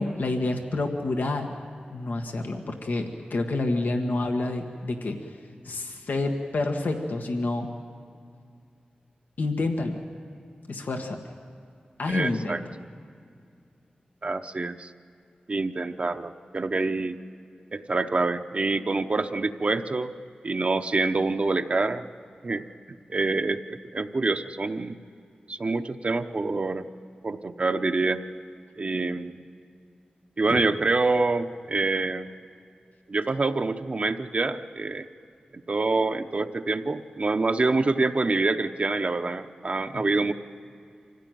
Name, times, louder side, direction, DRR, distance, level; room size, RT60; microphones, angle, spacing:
voice 1, 0.0-5.4 5.6-7.7 9.4-10.0 10.7-11.2 12.0-12.6 30.5-30.6, left 2 dB, 90° left, 4 dB, 1.5 m, -28 dB
voice 2, 12.1-12.6 14.2-14.9 15.5-17.1 17.7-20.1 20.4-22.1 22.4-22.6 23.1-25.0 25.5-26.9 27.2-28.2 28.8-29.4 30.4-32.3 33.1-35.0 35.7-40.3, right 3 dB, 45° right, 6 dB, 0.8 m, -26 dB
25.0 x 16.0 x 9.2 m, 2.4 s
wide cardioid pair, 85°, 3 cm